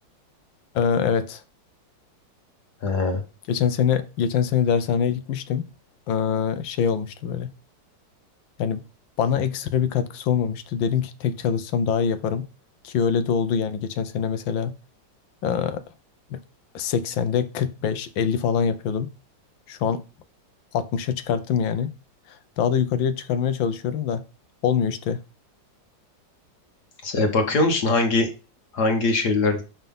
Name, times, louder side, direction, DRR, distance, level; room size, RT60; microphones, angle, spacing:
voice 1, 0.7-1.4 3.5-5.6 6.1-7.5 8.6-8.8 9.2-12.5 12.8-14.7 15.4-15.8 16.3-16.4 16.7-19.1 19.7-20.0 20.7-21.9 22.3-24.2 24.6-25.2, left 7 dB, 90° left, 1.6 m, -24 dB
voice 2, 2.8-3.2 27.0-28.3 28.7-29.6, left 3 dB, 60° left, 1.8 m, -21 dB
5.7 x 5.6 x 5.4 m
omnidirectional pair, 2.0 m